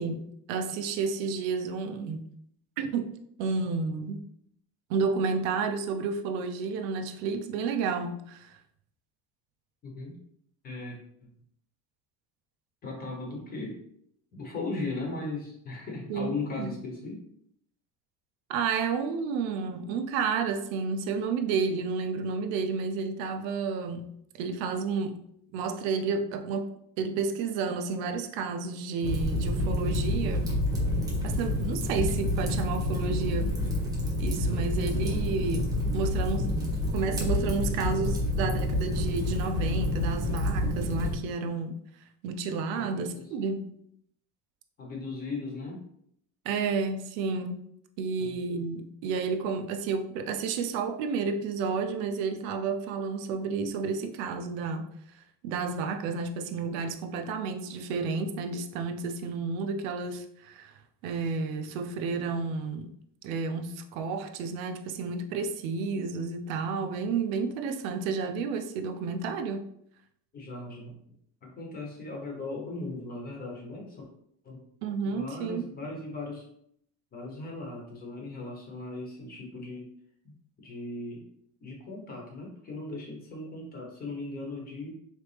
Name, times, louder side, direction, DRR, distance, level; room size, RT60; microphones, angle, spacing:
voice 1, 0.0-2.2 2.8-3.1 3.4-4.2 4.9-8.5 16.1-16.3 16.6-16.7 18.5-25.2 25.5-26.7 27.0-30.5 31.2-33.6 34.2-36.5 36.9-41.8 42.2-43.6 46.4-47.6 48.0-54.9 55.4-60.7 61.0-62.9 63.2-69.7 74.8-75.6, right 5 dB, 85° right, 0.7 m, -31 dB
voice 2, 9.8-10.2 10.6-11.3 12.8-13.8 14.3-17.3 34.5-34.8 42.7-43.3 44.8-45.8 48.2-48.4 70.3-71.0 71.4-74.1 74.4-74.6 75.0-76.5 77.1-79.9 80.6-81.3 81.6-84.9, left 3 dB, 25° left, 1.0 m, -38 dB
Fire, 29.0-41.1, left 1 dB, 10° right, 0.7 m, -28 dB
4.1 x 3.2 x 3.4 m
cardioid pair, 165°, 39 cm